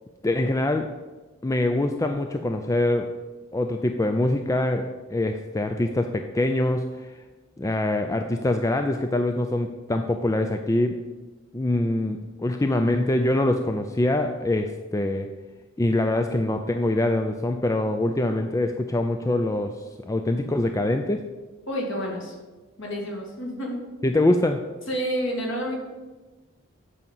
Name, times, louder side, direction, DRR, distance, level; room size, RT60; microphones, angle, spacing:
voice 1, 0.2-0.9 1.4-3.1 3.5-7.1 7.6-11.0 11.5-15.3 15.8-21.2 24.0-24.7, left 1 dB, 15° left, 6 dB, 0.4 m, -24 dB
voice 2, 21.7-22.3 22.8-23.8 24.9-25.8, equal, 60° left, -1 dB, 2.3 m, -29 dB
8.4 x 5.4 x 7.2 m, 1.2 s
head